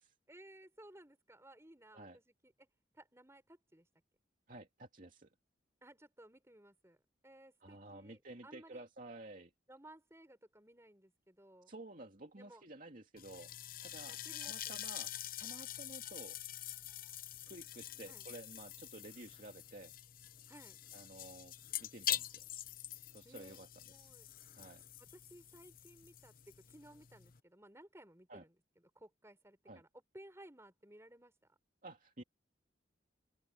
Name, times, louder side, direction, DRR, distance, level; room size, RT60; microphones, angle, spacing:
voice 1, 0.3-2.7 2.9-3.9 5.8-7.0 7.2-8.8 9.7-11.7 12.4-12.6 14.0-14.8 18.1-18.3 20.5-20.8 23.2-24.3 25.0-31.6, right 1 dB, 15° right, 6.4 m, -59 dB
voice 2, 4.5-5.3 7.6-9.5 11.7-13.5 13.8-15.1 15.4-16.4 17.5-19.9 20.9-21.5 21.8-22.5 23.1-23.7 23.9-24.1 24.5-24.8 28.3-28.4 29.7-29.8 31.8-32.2, right 2 dB, 45° right, 2.6 m, -52 dB
sound 1, 13.2-27.4, left 12 dB, 45° left, 0.8 m, -45 dB
open air
head